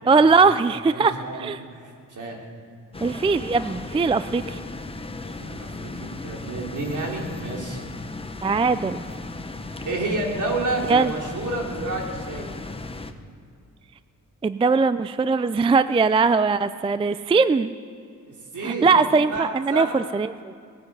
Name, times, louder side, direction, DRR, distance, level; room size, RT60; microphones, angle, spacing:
voice 1, 0.1-1.6 3.0-4.6 8.4-9.0 10.9-11.1 14.4-17.7 18.6-20.3, right 4 dB, 15° right, 13 dB, 0.3 m, -20 dB
voice 2, 0.9-2.4 5.4-7.8 9.9-12.5 18.5-18.9 19.2-19.9, right 2 dB, 65° right, -1 dB, 3.7 m, -30 dB
sound 1, 2.9-13.1, left 2 dB, 15° left, 0.9 m, -36 dB
19.5 x 9.4 x 8.0 m, 2.4 s
wide cardioid pair, 110°, 33 cm